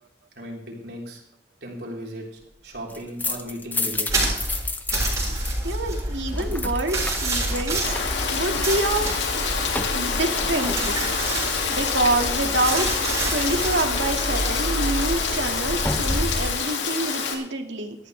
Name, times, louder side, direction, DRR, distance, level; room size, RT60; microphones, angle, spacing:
voice 1, 0.4-1.2 1.6-2.2 2.6-4.5, equal, 65° right, -2 dB, 4.0 m, -36 dB
sound 1, 2.7-5.5 5.8-11.4 14.4-16.6, left 2 dB, 10° left, 0.7 m, -32 dB
sound 2, 4.1-16.5, right 1 dB, 20° right, 7.3 m, -29 dB
voice 2, 5.6-7.9 8.3-9.1 9.9-11.1 11.7-12.9 13.3-18.0, right 2 dB, 90° right, 4 dB, 2.0 m, -26 dB
Rain, 7.8-17.3, left 5 dB, 85° left, 2.3 m, -26 dB
19.0 x 13.5 x 3.3 m, 0.66 s
head